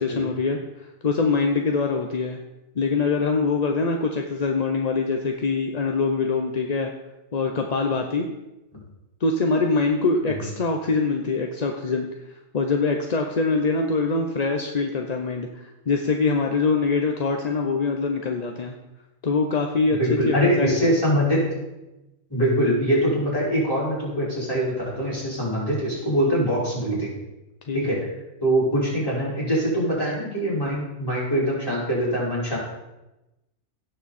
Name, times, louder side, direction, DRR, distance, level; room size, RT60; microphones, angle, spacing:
voice 1, 0.0-2.4 2.8-6.9 7.3-8.3 9.2-18.8 19.2-20.8 26.2-26.3 27.7-27.8, left 4 dB, 40° left, 3 dB, 0.7 m, -24 dB
voice 2, 20.0-21.4 22.3-27.1 27.7-28.0 28.4-32.6, equal, 15° left, -7 dB, 4.9 m, -23 dB
16.5 x 6.9 x 4.2 m, 0.98 s
omnidirectional pair, 1.4 m